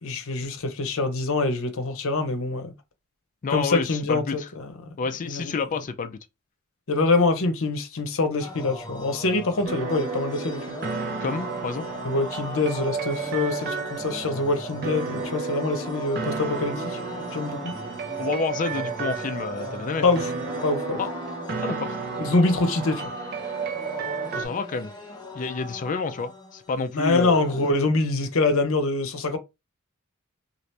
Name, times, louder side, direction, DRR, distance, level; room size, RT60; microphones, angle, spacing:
voice 1, 0.0-2.7 3.5-4.7 5.2-5.6 6.9-10.8 12.0-17.0 17.3-17.7 20.0-20.3 20.6-21.0 22.2-23.1 26.9-29.4, left 3 dB, 65° left, 0.7 m, -25 dB
voice 2, 3.4-4.5 5.0-6.2 11.2-11.9 18.2-20.0 21.0-21.1 21.6-22.0 24.3-24.9 25.3-27.4, left 4 dB, 35° left, 0.3 m, -29 dB
sound 1, 8.4-27.7, left 1 dB, 20° left, 0.8 m, -39 dB
sound 2, 9.6-24.4, right 5 dB, 50° right, 0.6 m, -32 dB
2.8 x 2.5 x 3.2 m
head